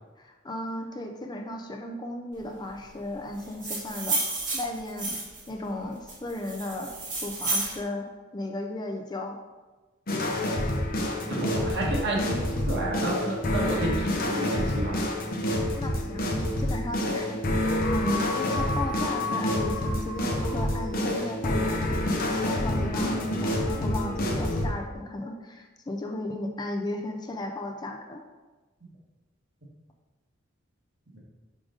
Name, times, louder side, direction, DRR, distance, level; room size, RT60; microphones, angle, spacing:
voice 1, 0.2-4.2 4.5-5.2 5.5-6.9 7.2-9.4 15.8-17.4 17.9-28.2, left 1 dB, 20° left, 3 dB, 0.4 m, -35 dB
sound 1, 3.4-5.5 6.1-7.8, right 2 dB, 40° right, 1.9 m, -31 dB
sound 2, 10.1-24.7, left 1 dB, 45° left, 0.8 m, -28 dB
voice 2, 11.3-15.0 31.1-31.2, right 2 dB, 60° right, -4 dB, 1.6 m, -30 dB
5.0 x 3.8 x 5.0 m, 1.2 s
head